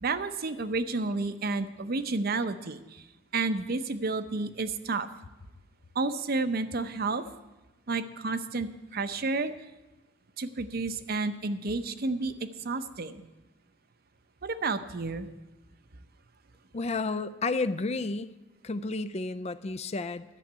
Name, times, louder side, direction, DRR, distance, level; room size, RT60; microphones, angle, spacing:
voice 1, 0.0-3.0 3.3-5.1 5.9-7.2 7.9-9.5 10.4-13.2 14.4-15.3, right 3 dB, 55° right, 11 dB, 0.7 m, -31 dB
voice 2, 16.7-18.3 18.6-20.2, left 3 dB, 35° left, 14 dB, 0.4 m, -31 dB
11.5 x 7.1 x 9.3 m, 1.1 s
head